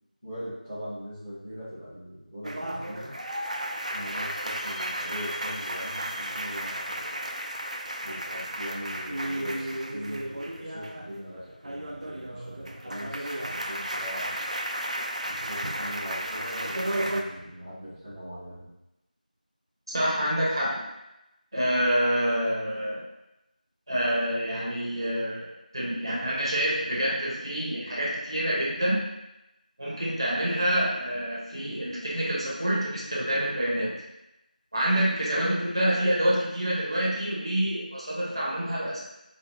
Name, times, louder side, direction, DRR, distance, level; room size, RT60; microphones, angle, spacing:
voice 1, 0.2-3.1 3.9-7.0 8.0-14.3 15.2-18.7, equal, 5° left, -18 dB, 1.0 m, -41 dB
sound 1, 2.4-11.2 11.5-17.2, right 1 dB, 50° right, 0.3 m, -33 dB
voice 2, 19.9-20.8 21.5-23.0 23.9-29.0 29.8-33.9 34.7-39.0, right 1 dB, 35° right, -6 dB, 0.7 m, -27 dB
3.4 x 2.6 x 2.6 m, 0.91 s
figure-of-eight pair, 175°, 5 cm